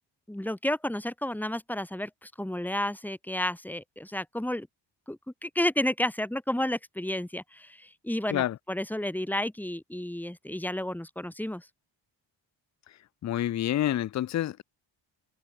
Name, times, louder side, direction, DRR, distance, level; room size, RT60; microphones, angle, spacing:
voice 1, 0.3-4.7 5.1-11.7, left 1 dB, 5° left, 2.9 m, -31 dB
voice 2, 13.2-14.6, left 12 dB, 40° left, 0.4 m, -28 dB
wide cardioid pair, 130°, 45 cm